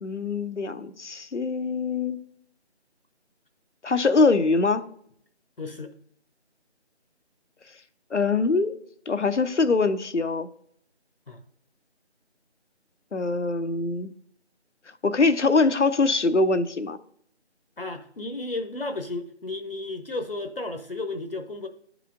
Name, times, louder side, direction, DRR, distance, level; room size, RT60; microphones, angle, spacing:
voice 1, 0.0-2.2 3.8-4.8 8.1-8.8 9.1-10.5 13.1-14.1 15.0-17.0, left 3 dB, 90° left, 11 dB, 0.7 m, -23 dB
voice 2, 5.6-5.9 11.3-11.4 17.8-21.7, left 2 dB, 55° left, 7 dB, 0.7 m, -33 dB
11.5 x 4.9 x 2.4 m, 0.68 s
figure-of-eight pair, 165°, 35 cm